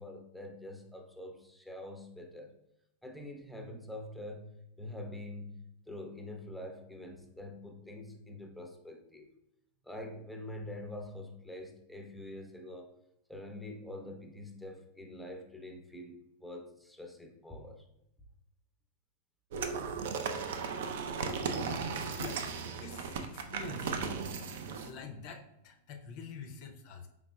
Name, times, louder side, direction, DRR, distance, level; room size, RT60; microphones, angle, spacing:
voice 1, 0.0-2.5 3.0-5.6 5.9-9.3 9.8-12.9 13.3-17.8, left 1 dB, ahead, 3 dB, 0.6 m, -45 dB
sound 1, 19.5-24.9, right 5 dB, 55° right, 0.4 m, -36 dB
voice 2, 21.8-22.5 22.8-24.0 24.3-27.1, left 4 dB, 45° left, 5 dB, 0.4 m, -47 dB
4.9 x 3.5 x 2.2 m, 0.84 s
figure-of-eight pair, 90°, 0 cm